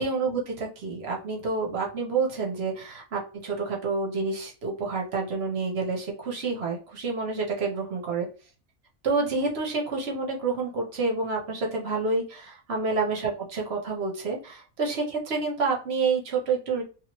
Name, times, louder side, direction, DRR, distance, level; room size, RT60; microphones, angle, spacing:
voice 1, 0.0-8.3 9.0-16.8, right 4 dB, 55° right, 0 dB, 1.0 m, -28 dB
2.9 x 2.7 x 2.9 m, 0.36 s
omnidirectional pair, 1.3 m